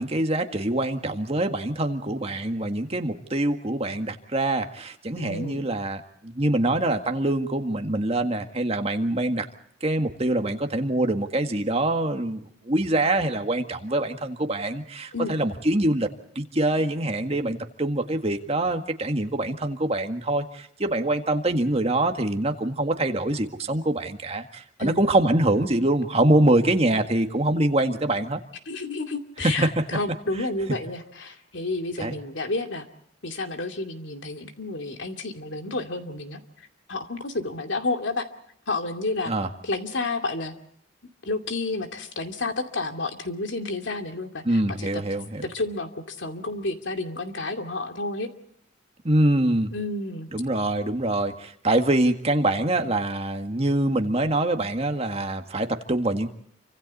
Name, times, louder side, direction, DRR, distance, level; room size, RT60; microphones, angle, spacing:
voice 1, 0.0-9.5 9.8-16.1 16.4-28.4 29.6-29.7 32.0-32.2 39.3-39.5 44.5-45.5 49.0-49.7 50.3-56.3, right 1 dB, 35° right, 6 dB, 1.8 m, -24 dB
voice 2, 5.2-5.6 15.1-15.4 24.8-25.0 28.7-32.9 33.2-38.3 38.7-39.3 39.6-40.5 41.2-45.0 45.4-48.3 49.7-50.3, left 2 dB, 75° left, 6 dB, 2.5 m, -30 dB
29.0 x 25.5 x 4.2 m, 0.69 s
head